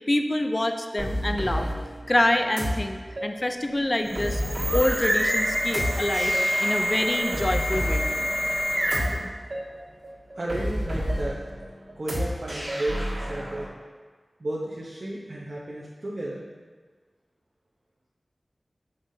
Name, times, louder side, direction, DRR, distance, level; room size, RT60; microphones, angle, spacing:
voice 1, 0.1-1.7 2.1-4.4 4.7-6.3 6.6-8.1, left 1 dB, 30° left, 6 dB, 0.4 m, -26 dB
sound 1, 1.0-13.7, equal, 80° right, 1.6 m, -31 dB
sound 2, 4.0-9.3, equal, 25° right, 1.1 m, -27 dB
voice 2, 10.3-11.4 12.0-13.7 14.4-16.4, right 1 dB, 60° right, -5 dB, 0.8 m, -33 dB
6.9 x 5.5 x 2.7 m, 1.4 s
wide cardioid pair, 55°, 0 cm